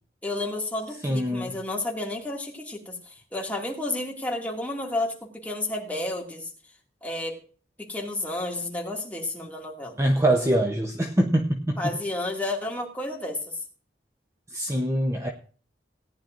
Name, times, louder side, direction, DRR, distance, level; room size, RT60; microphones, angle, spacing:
voice 1, 0.2-2.9 3.3-6.5 7.0-7.4 7.8-10.0 11.8-13.5, left 2 dB, 10° left, -1 dB, 2.3 m, -31 dB
voice 2, 1.0-1.6 10.0-11.9 14.5-15.3, right 1 dB, 15° right, 3 dB, 0.8 m, -24 dB
18.0 x 10.0 x 2.6 m, 0.42 s
head